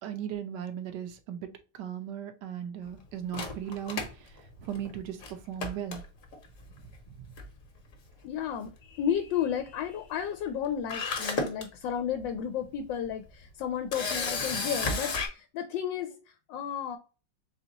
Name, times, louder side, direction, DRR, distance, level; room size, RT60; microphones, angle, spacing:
voice 1, 0.0-6.0 6.7-7.4, right 9 dB, 75° right, 1.3 m, -38 dB
Camera, 3.3-4.9 5.2-5.3 5.6-6.5 7.4-7.6 7.9-8.0 10.5-10.6 10.9-11.6 12.2-12.4 13.9-15.3, left 4 dB, 50° left, 1.3 m, -32 dB
voice 2, 8.2-16.1 16.5-17.0, left 8 dB, 90° left, 1.3 m, -33 dB
4.2 x 3.5 x 2.8 m
omnidirectional pair, 1.9 m